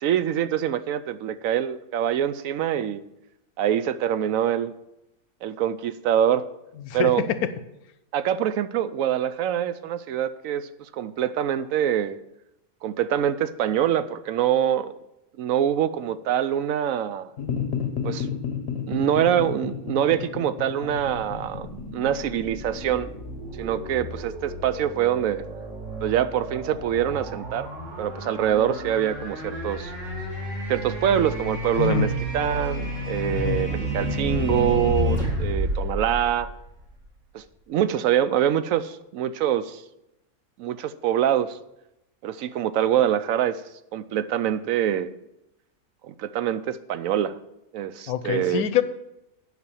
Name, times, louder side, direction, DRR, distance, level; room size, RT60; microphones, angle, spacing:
voice 1, 0.0-3.0 3.6-4.7 5.4-6.4 6.9-7.2 8.1-10.7 10.9-12.2 12.8-15.0 15.4-17.3 18.0-18.3 18.9-23.1 23.6-25.4 26.0-27.7 28.0-29.9 30.7-36.5 37.3-39.8 40.6-41.6 42.2-43.6 43.9-45.1 46.0-47.4 47.7-48.6, right 10 dB, 70° right, 13 dB, 0.9 m, -25 dB
voice 2, 6.8-7.4 31.7-32.1 33.3-33.6 48.1-48.8, left 8 dB, 75° left, 12 dB, 1.2 m, -25 dB
sound 1, 17.4-23.9, left 7 dB, 50° left, 0.9 m, -32 dB
sound 2, 20.9-37.1, equal, 55° right, 2.6 m, -31 dB
9.5 x 5.9 x 7.2 m, 0.87 s
omnidirectional pair, 1.6 m